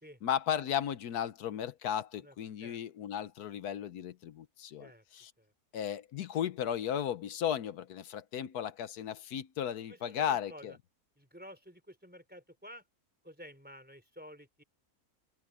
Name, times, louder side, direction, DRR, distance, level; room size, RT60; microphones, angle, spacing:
voice 1, 0.2-5.3 5.7-10.7, left 9 dB, 75° left, 1.4 m, -35 dB
voice 2, 9.9-10.8 11.2-12.8 13.2-14.6, equal, 5° right, 3.8 m, -51 dB
open air
omnidirectional pair, 1.7 m